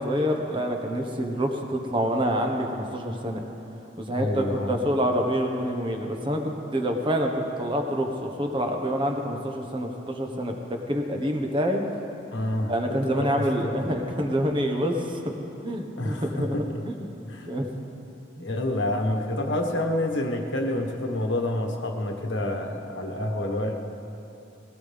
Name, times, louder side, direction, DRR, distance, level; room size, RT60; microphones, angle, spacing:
voice 1, 0.0-3.4 4.0-6.4 6.7-11.8 12.7-16.5 16.8-16.9 17.5-17.7, equal, 25° right, 3 dB, 1.3 m, -27 dB
voice 2, 4.1-4.7 12.3-12.7 13.2-13.7 16.0-16.8 17.2-17.5 18.4-23.8, left 1 dB, 75° left, 2 dB, 1.5 m, -28 dB
19.5 x 17.5 x 3.5 m, 2.9 s
head